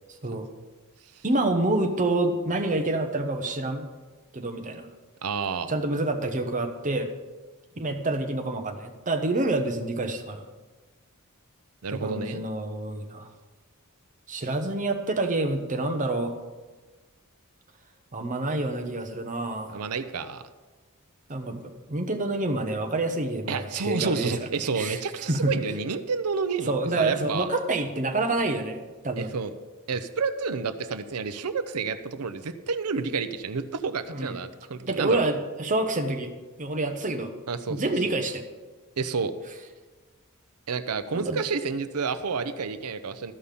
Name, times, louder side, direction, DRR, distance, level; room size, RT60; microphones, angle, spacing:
voice 1, 1.2-3.9 4.3-4.9 5.7-7.1 7.8-10.5 11.9-13.3 14.3-16.4 18.1-19.9 21.3-24.5 24.7-25.0 25.3-25.5 26.6-29.4 34.1-34.3 34.9-37.3 37.7-38.4 41.1-41.4, right 2 dB, 35° right, 5 dB, 1.1 m, -28 dB
voice 2, 5.2-5.7 11.8-12.4 19.7-20.4 23.5-27.5 29.2-29.5 29.9-35.2 37.5-37.8 39.0-39.3 40.7-43.3, right 5 dB, 85° right, 11 dB, 0.7 m, -30 dB
13.5 x 5.6 x 6.8 m, 1.3 s
head